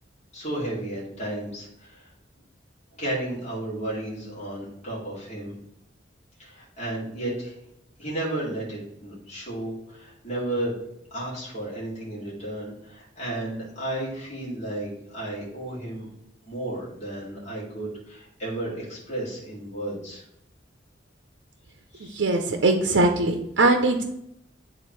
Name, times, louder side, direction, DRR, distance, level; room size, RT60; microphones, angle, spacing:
voice 1, 0.3-2.1 2.9-5.5 6.4-7.6 8.0-10.7 11.1-16.1 16.5-20.3 21.9-22.3, right 1 dB, 40° left, -6 dB, 2.4 m, -33 dB
voice 2, 22.2-24.0, right 2 dB, 70° right, 4 dB, 0.6 m, -21 dB
8.7 x 3.7 x 3.1 m, 0.79 s
head